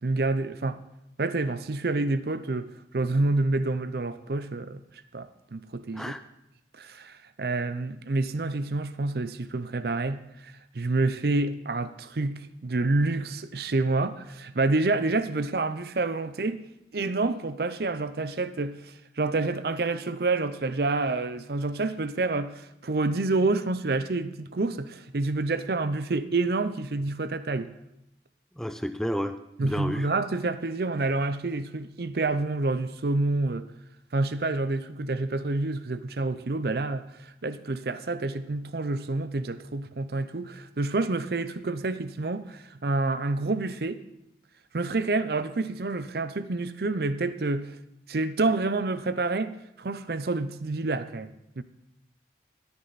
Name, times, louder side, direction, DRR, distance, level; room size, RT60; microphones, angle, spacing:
voice 1, 0.0-0.8 1.2-4.8 5.1-6.1 6.7-16.6 16.9-27.7 29.6-33.7 34.1-44.0 44.7-47.8 48.1-51.3 51.6-51.7, right 3 dB, 55° right, 0.6 m, -28 dB
voice 2, 28.6-30.1, equal, ahead, 0.3 m, -31 dB
14.0 x 9.5 x 4.1 m
head